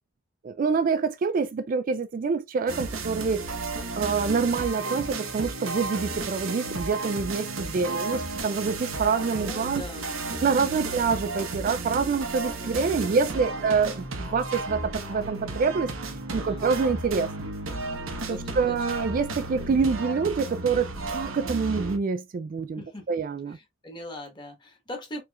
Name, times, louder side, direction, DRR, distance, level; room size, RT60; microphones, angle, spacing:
voice 1, 0.4-3.5 4.0-9.8 10.4-15.9 16.3-17.3 18.3-22.8 23.1-23.6, right 5 dB, 40° right, 0.3 m, -26 dB
sound 1, 2.7-22.0, right 3 dB, 80° right, 1.0 m, -33 dB
voice 2, 7.8-8.2 9.4-10.1 10.4-10.9 12.6-13.7 16.3-16.7 18.3-18.8 22.7-23.1 23.5-25.2, left 1 dB, 20° left, 1.2 m, -42 dB
4.5 x 3.1 x 2.3 m
head